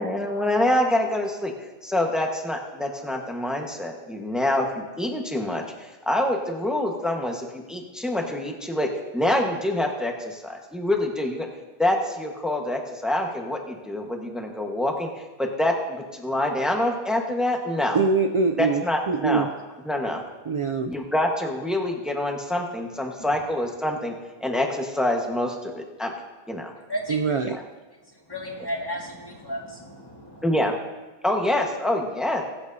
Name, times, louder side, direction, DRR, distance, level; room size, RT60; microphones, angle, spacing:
voice 1, 0.0-1.5 1.8-5.6 6.1-11.5 11.8-15.1 15.4-18.0 18.6-19.5 19.9-20.2 20.9-24.1 24.4-26.1 26.5-26.7 27.4-27.6 30.4-30.7 31.2-32.5, left 1 dB, ahead, 1 dB, 1.2 m, -26 dB
voice 2, 17.9-19.5 20.5-20.9 27.1-27.6, right 4 dB, 50° right, 7 dB, 0.3 m, -23 dB
voice 3, 26.9-27.3 28.3-30.4, equal, 25° left, -2 dB, 2.0 m, -33 dB
22.5 x 8.1 x 2.7 m, 1.2 s
omnidirectional pair, 1.0 m